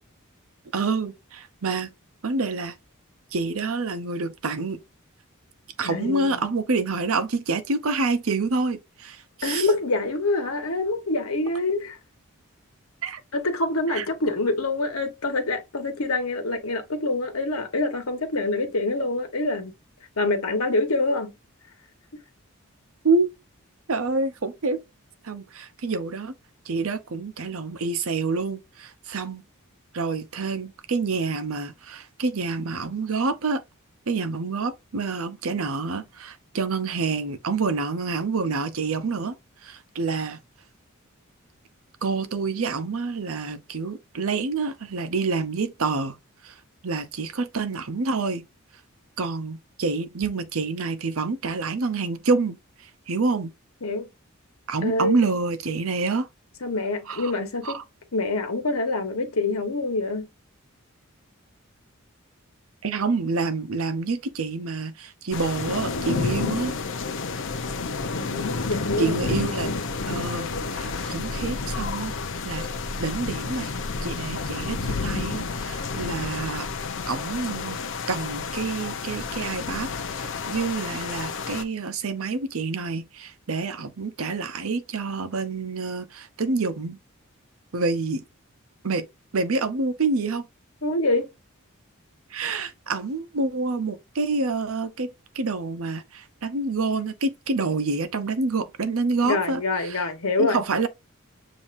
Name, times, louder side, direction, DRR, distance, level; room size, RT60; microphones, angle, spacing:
voice 1, 0.7-1.9 2.2-2.7 3.3-4.8 5.8-9.7 13.0-13.2 13.9-14.1 23.0-23.3 23.9-24.8 25.2-26.3 26.7-29.4 29.9-33.6 34.1-39.4 39.6-40.4 42.0-46.1 46.4-46.6 46.8-48.5 49.2-52.6 53.1-53.5 54.7-56.3 57.1-57.3 57.6-57.8 62.8-66.7 69.0-69.7 70.1-72.1 72.4-72.7 73.0-73.7 74.0-76.7 77.1-77.8 78.1-87.0 87.7-88.2 88.8-89.0 89.3-90.5 92.3-95.1 95.3-100.1 100.4-100.9, right 3 dB, 70° right, 0.8 m, -27 dB
voice 2, 5.8-6.4 9.4-12.0 13.3-19.7 20.2-21.3 53.8-54.1 54.8-55.2 56.6-57.8 58.1-60.3 68.1-69.2 90.8-91.3 99.2-100.6, left 2 dB, 80° left, 1.3 m, -26 dB
sound 1, 65.3-81.6, left 4 dB, 60° left, 0.7 m, -30 dB
7.2 x 2.8 x 2.6 m
head